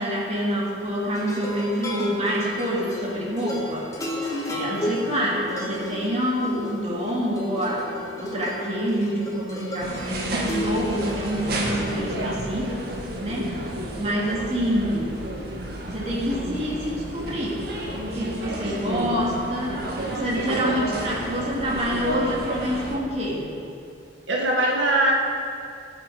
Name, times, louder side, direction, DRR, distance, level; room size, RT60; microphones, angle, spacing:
voice 1, 0.0-3.9 4.5-12.8 13.2-13.6 14.0-15.1 15.9-17.6 18.0-19.8 20.1-23.5, equal, 35° right, -5 dB, 2.9 m, -27 dB
sound 1, 1.1-12.1, left 1 dB, 20° left, 1.6 m, -33 dB
sound 2, 9.8-23.0, right 1 dB, 55° right, 1.7 m, -31 dB
voice 2, 18.9-19.2 24.3-25.1, right 1 dB, 85° right, -2 dB, 1.7 m, -22 dB
19.0 x 8.2 x 5.1 m, 2.7 s
head